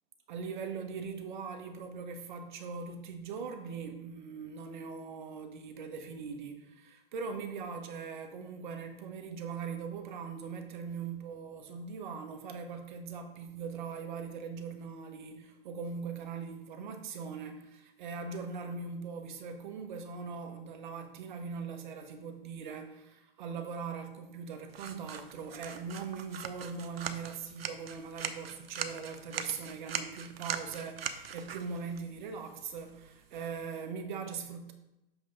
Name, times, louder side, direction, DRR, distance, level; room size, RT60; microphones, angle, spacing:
voice 1, 0.3-34.7, right 5 dB, 55° right, 1.0 m, -41 dB
sound 1, 24.7-33.8, right 7 dB, 85° right, 0.8 m, -42 dB
7.5 x 3.4 x 5.2 m
hypercardioid pair, 145°, 29 cm